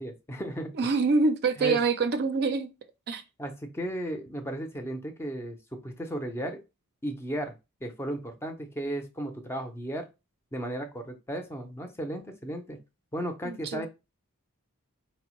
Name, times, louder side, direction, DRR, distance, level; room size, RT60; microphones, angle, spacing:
voice 1, 0.0-0.8 1.6-1.8 3.4-6.6 7.0-10.1 10.5-12.8 13.1-13.9, right 1 dB, 10° left, 0.5 m, -35 dB
voice 2, 0.8-2.7 3.1-3.2 13.4-13.9, right 4 dB, 50° right, 0.4 m, -25 dB
4.3 x 2.0 x 2.9 m
head